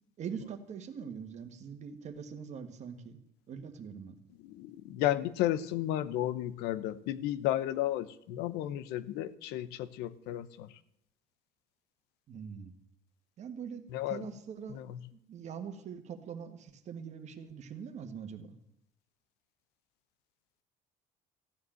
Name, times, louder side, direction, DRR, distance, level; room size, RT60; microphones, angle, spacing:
voice 1, 0.2-3.2 3.5-4.2 12.3-12.7 13.4-14.8 15.1-18.5, right 7 dB, 45° right, 8 dB, 1.7 m, -43 dB
voice 2, 4.5-10.7 13.9-14.2 14.7-15.0, left 13 dB, 90° left, 15 dB, 0.8 m, -33 dB
15.0 x 9.6 x 7.7 m, 0.75 s
cardioid pair, 135°, 16 cm